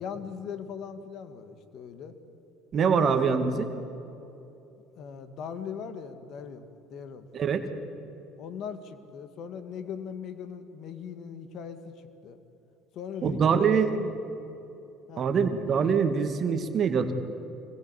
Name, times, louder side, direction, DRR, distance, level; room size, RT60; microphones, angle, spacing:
voice 1, 0.0-2.1 2.8-3.5 5.0-7.3 8.4-11.8 12.2-12.4 12.9-14.1 15.1-15.3, left 7 dB, 60° left, 9 dB, 2.2 m, -39 dB
voice 2, 2.7-3.7 7.3-7.7 13.2-13.9 15.2-17.1, right 6 dB, 45° right, 7 dB, 2.2 m, -24 dB
26.0 x 21.0 x 8.4 m, 2.9 s
hypercardioid pair, 70°, 0 cm